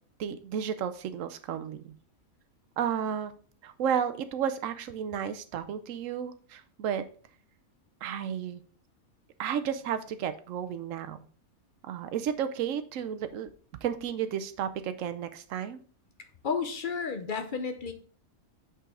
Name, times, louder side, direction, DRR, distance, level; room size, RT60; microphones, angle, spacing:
voice 1, 0.2-1.9 2.8-3.3 3.6-7.0 8.0-8.6 9.4-11.2 11.8-13.5 13.8-15.8, right 8 dB, 70° right, 11 dB, 1.0 m, -32 dB
voice 2, 16.4-17.9, left 5 dB, 45° left, 8 dB, 0.7 m, -32 dB
6.2 x 5.6 x 3.6 m, 0.43 s
omnidirectional pair, 1.5 m